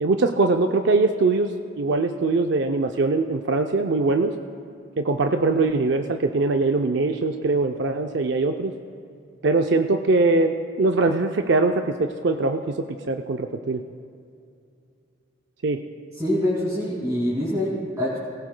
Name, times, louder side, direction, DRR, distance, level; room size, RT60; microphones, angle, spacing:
voice 1, 0.0-4.3 5.0-8.7 9.4-13.8 15.6-15.8, right 3 dB, 60° right, 5 dB, 0.5 m, -22 dB
voice 2, 16.2-18.2, left 1 dB, 15° right, -8 dB, 2.3 m, -25 dB
18.5 x 17.0 x 2.2 m, 2.5 s
head